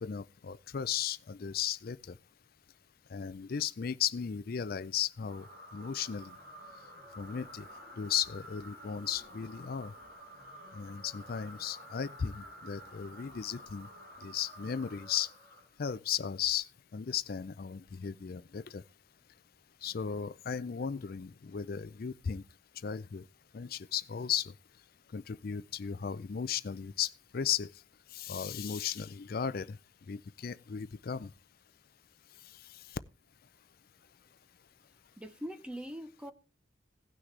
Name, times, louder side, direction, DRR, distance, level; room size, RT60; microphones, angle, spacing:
voice 1, 0.0-2.2 3.1-5.5 5.7-6.3 7.2-7.6 8.0-9.9 10.7-13.9 14.2-15.3 15.8-16.7 16.9-18.8 19.8-22.4 22.8-23.2 23.5-24.5 25.1-27.7 28.1-29.8 30.1-31.3, left 8 dB, 45° left, 0.4 m, -35 dB
sound 1, 5.2-16.0, equal, 50° right, 6.6 m, -51 dB
voice 2, 35.2-36.3, equal, 5° right, 0.6 m, -42 dB
17.0 x 6.2 x 3.3 m
head